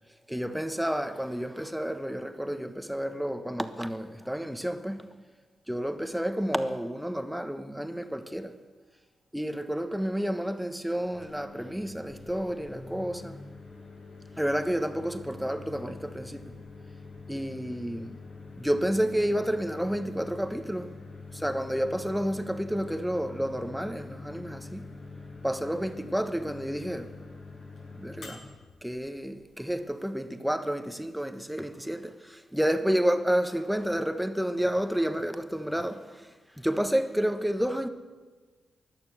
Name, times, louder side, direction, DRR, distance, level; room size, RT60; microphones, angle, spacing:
voice 1, 0.3-5.1 5.7-8.6 9.3-13.4 14.4-16.6 17.3-18.2 18.6-20.9 21.3-24.9 25.4-27.1 27.9-28.4 28.8-37.9, equal, 5° right, 1.3 m, -30 dB
Microwave oven, 11.1-29.8, left 3 dB, 65° left, 6.5 m, -45 dB
17.0 x 11.5 x 6.8 m
hypercardioid pair, 40°, 0 cm